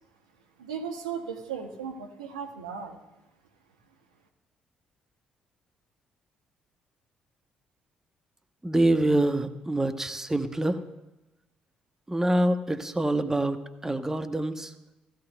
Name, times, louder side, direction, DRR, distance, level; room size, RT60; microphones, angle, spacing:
voice 1, 0.6-3.0, right 6 dB, 85° right, 4 dB, 0.8 m, -36 dB
voice 2, 8.6-10.8 12.1-14.7, right 1 dB, 15° right, 9 dB, 0.9 m, -26 dB
16.0 x 14.0 x 2.3 m, 1.0 s
figure-of-eight pair, 45°, 3 cm